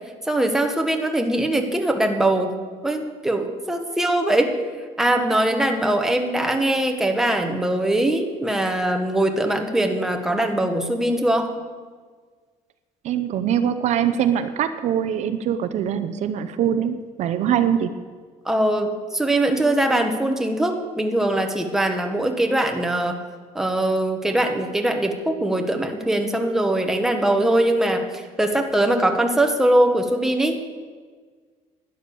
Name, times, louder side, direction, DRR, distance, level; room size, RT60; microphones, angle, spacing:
voice 1, 0.3-2.6 2.8-4.6 5.0-11.5 18.4-23.2 23.5-30.8, right 1 dB, 5° right, 4 dB, 1.1 m, -21 dB
voice 2, 13.0-17.9, right 9 dB, 55° right, 10 dB, 0.6 m, -23 dB
11.5 x 10.0 x 6.9 m, 1.6 s
cardioid pair, 155°, 14 cm